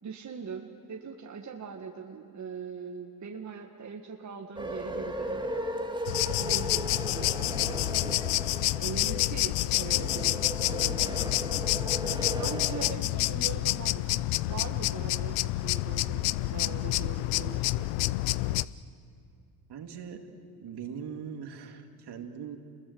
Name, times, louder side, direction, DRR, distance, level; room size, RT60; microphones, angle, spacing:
voice 1, 0.0-5.4 6.4-8.5 8.8-11.1 12.3-14.0 14.4-17.9, right 6 dB, 35° right, 2 dB, 1.9 m, -41 dB
sound 1, 4.5-12.9, right 1 dB, 10° right, 1.9 m, -36 dB
sound 2, 6.1-18.6, left 19 dB, 75° left, 0.7 m, -28 dB
voice 2, 19.7-20.3 20.6-22.6, right 7 dB, 50° right, 5 dB, 2.6 m, -41 dB
27.5 x 21.5 x 8.0 m, 2.5 s
supercardioid pair, 80°, 49 cm